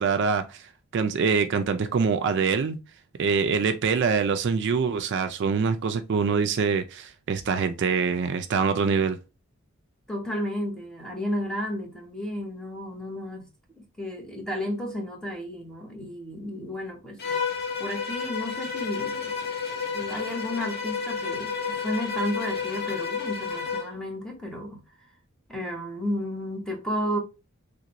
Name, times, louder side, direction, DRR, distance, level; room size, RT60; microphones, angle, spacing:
voice 1, 0.0-2.8 3.2-9.2, right 5 dB, 55° right, 0.4 m, -24 dB
voice 2, 10.1-13.5 13.8-17.2 17.8-19.3 19.9-24.8 25.5-27.2, equal, 5° left, 0.9 m, -32 dB
Bowed string instrument, 17.2-23.9, left 5 dB, 50° left, 0.7 m, -31 dB
3.4 x 2.5 x 2.9 m
head